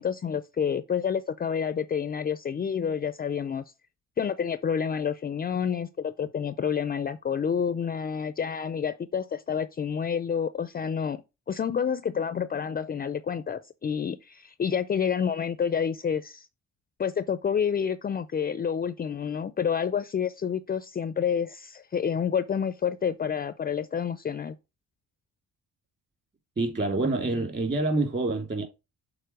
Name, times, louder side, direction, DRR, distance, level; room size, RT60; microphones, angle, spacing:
voice 1, 0.0-3.6 4.2-11.2 11.5-16.5 17.0-24.5, left 7 dB, 30° left, 0.4 m, -29 dB
voice 2, 26.6-28.6, right 2 dB, 35° right, 2.8 m, -27 dB
6.8 x 4.2 x 4.6 m
cardioid pair, 90°, 30 cm